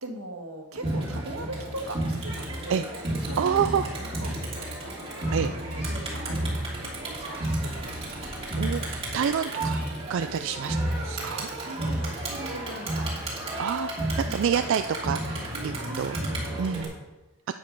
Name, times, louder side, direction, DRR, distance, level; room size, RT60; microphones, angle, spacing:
voice 1, 0.0-2.9 3.2-8.3 11.6-13.0 14.1-14.4 15.5-16.9, right 1 dB, 90° right, 3 dB, 1.6 m, -40 dB
Crowd, 0.8-16.8, right 1 dB, 25° right, 2.8 m, -31 dB
voice 2, 3.4-3.9 5.3-5.5 8.6-9.8 10.1-10.8 11.0-11.5 13.6-16.2 16.6-16.9, right 7 dB, 60° right, 9 dB, 0.3 m, -28 dB
9.1 x 8.2 x 5.2 m, 1.0 s
head